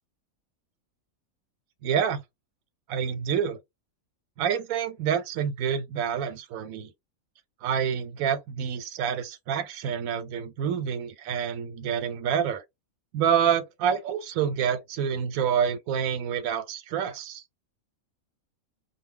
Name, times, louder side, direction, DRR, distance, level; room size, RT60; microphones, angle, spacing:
voice 1, 1.8-2.2 2.9-3.6 4.4-6.9 7.6-12.6 13.1-17.4, right 8 dB, 85° right, 1.0 m, -27 dB
2.3 x 2.1 x 3.5 m
omnidirectional pair, 1.4 m